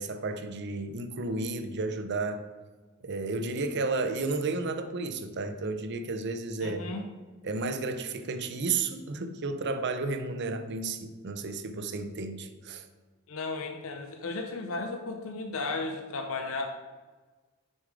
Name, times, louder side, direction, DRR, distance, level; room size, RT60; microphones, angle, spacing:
voice 1, 0.0-2.4 3.0-6.9 7.4-12.9, right 3 dB, 50° right, 9 dB, 0.6 m, -32 dB
voice 2, 6.6-7.1 13.3-16.7, left 3 dB, 65° left, 5 dB, 0.6 m, -34 dB
6.5 x 5.4 x 4.9 m, 1.3 s
head